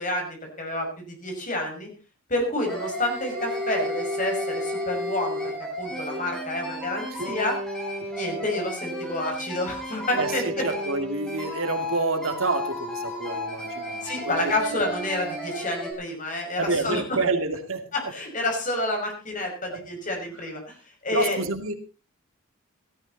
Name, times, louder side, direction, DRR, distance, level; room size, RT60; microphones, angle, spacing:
voice 1, 0.0-1.9 2.3-5.4 5.8-7.6 8.1-10.6 14.0-17.0 17.9-20.7 21.0-21.4, left 1 dB, 35° left, 2 dB, 5.9 m, -29 dB
sound 1, 2.6-15.9, left 1 dB, 5° left, 5.8 m, -32 dB
voice 2, 10.2-14.4 14.7-14.9 16.6-17.9 19.7-19.9 21.1-21.7, right 3 dB, 70° right, 6 dB, 2.5 m, -28 dB
17.5 x 13.5 x 4.1 m, 0.33 s
head